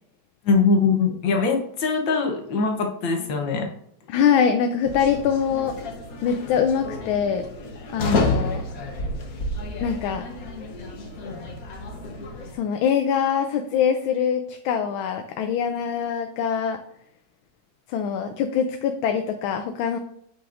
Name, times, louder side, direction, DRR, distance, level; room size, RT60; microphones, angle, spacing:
voice 1, 0.5-3.7, left 4 dB, 75° left, 3 dB, 1.7 m, -22 dB
voice 2, 4.1-5.7 6.2-7.4 7.9-8.6 9.8-10.2 12.5-16.8 17.9-20.0, left 7 dB, 90° left, 6 dB, 1.4 m, -23 dB
sound 1, 4.8-12.5, left 2 dB, 50° left, 1.4 m, -30 dB
8.4 x 5.9 x 2.5 m, 0.73 s
omnidirectional pair, 2.2 m